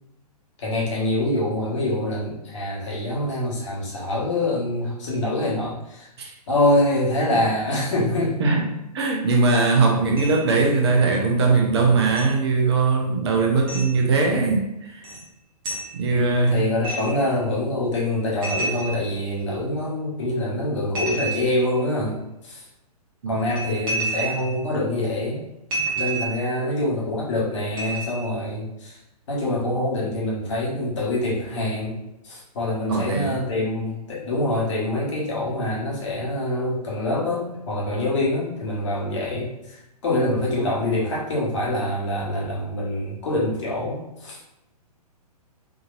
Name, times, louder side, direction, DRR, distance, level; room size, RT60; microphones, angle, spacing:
voice 1, 0.6-6.1 6.5-8.4 16.1-22.6 23.3-25.4 25.9-29.0 29.3-32.0 32.2-44.4, left 1 dB, 45° left, -4 dB, 1.2 m, -25 dB
voice 2, 8.9-15.1 15.9-16.7 23.2-23.3 32.9-33.4, right 3 dB, 40° right, 0 dB, 0.7 m, -20 dB
sound 1, 10.2-10.6 12.2-12.3 13.7-13.9 15.0-15.2 15.6-15.9 16.8-17.3 18.4-19.5 21.0-21.8 23.4-24.6 25.7-26.5 27.8-28.3, right 2 dB, 25° right, 0.9 m, -29 dB
3.8 x 2.7 x 2.5 m, 0.89 s
figure-of-eight pair, 120°, 20 cm